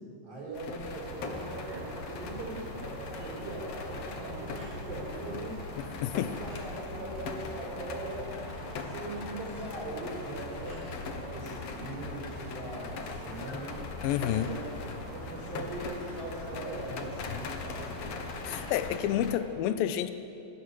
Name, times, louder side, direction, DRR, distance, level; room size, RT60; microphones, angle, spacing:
voice 1, 0.2-5.6 6.4-8.4 8.8-13.8 14.3-14.6 15.1-18.2, right 2 dB, 75° right, -5 dB, 8.2 m, -40 dB
sound 1, 0.5-19.4, left 4 dB, 65° left, 1.6 m, -41 dB
sound 2, 0.8-19.0, right 1 dB, 55° right, 4.8 m, -44 dB
sound 3, 1.5-2.2 2.9-3.4 3.8-5.6 6.1-7.0 7.4-8.6 9.3-9.9 10.4-11.1 11.5-13.4 13.9-15.1 15.7-16.9, right 2 dB, 30° right, 3.3 m, -55 dB
voice 2, 6.0-6.4 14.0-14.5 17.3-17.4 18.5-20.1, left 11 dB, 80° left, 11 dB, 2.2 m, -29 dB
26.0 x 13.0 x 7.6 m, 2.8 s
omnidirectional pair, 4.8 m